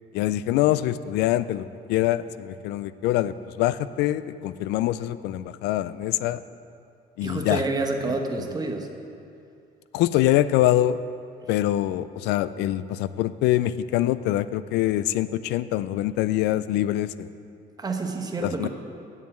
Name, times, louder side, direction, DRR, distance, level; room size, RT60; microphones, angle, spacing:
voice 1, 0.1-6.4 7.2-7.6 8.0-8.1 9.9-11.0 11.5-17.3 18.4-18.7, left 14 dB, 90° left, 15 dB, 0.4 m, -24 dB
voice 2, 7.2-8.9 17.8-18.7, right 3 dB, 25° right, 3 dB, 1.2 m, -28 dB
8.3 x 7.3 x 8.7 m, 2.5 s
cardioid pair, 110°, 17 cm